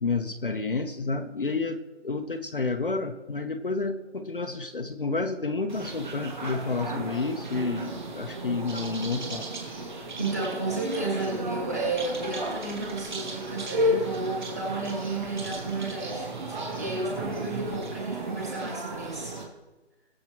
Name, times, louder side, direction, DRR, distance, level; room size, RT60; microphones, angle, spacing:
voice 1, 0.0-9.5, left 3 dB, 45° left, 5 dB, 0.8 m, -30 dB
sound 1, 5.7-19.4, right 1 dB, 40° right, 2.3 m, -33 dB
voice 2, 10.2-19.4, right 2 dB, 15° right, -2 dB, 1.6 m, -32 dB
22.0 x 7.5 x 3.0 m, 1.2 s
figure-of-eight pair, 175°, 36 cm